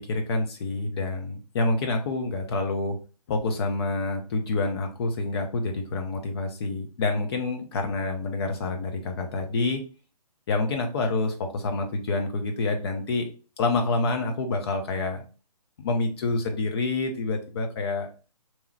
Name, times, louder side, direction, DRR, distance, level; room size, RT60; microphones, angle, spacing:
voice 1, 0.0-3.0 3.3-9.8 10.5-13.3 13.6-15.2 15.8-18.1, left 3 dB, 40° left, 4 dB, 0.9 m, -27 dB
3.5 x 3.1 x 3.3 m, 0.36 s
hypercardioid pair, 145°, 20 cm